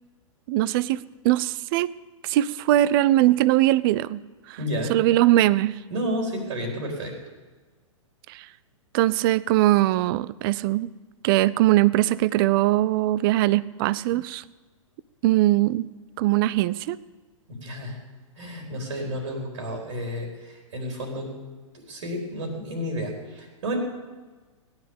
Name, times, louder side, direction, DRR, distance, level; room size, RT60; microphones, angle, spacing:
voice 1, 0.5-1.9 2.2-4.2 4.5-4.6 4.9-5.8 8.3-8.5 8.9-10.9 11.2-14.4 15.2-15.9 16.2-17.0, right 15 dB, 40° right, 20 dB, 0.5 m, -21 dB
voice 2, 4.6-5.0 5.9-7.2 17.5-18.0 18.3-21.3 21.7-23.8, equal, 65° right, 1 dB, 4.1 m, -31 dB
17.0 x 10.5 x 7.1 m, 1.3 s
hypercardioid pair, 115°, 17 cm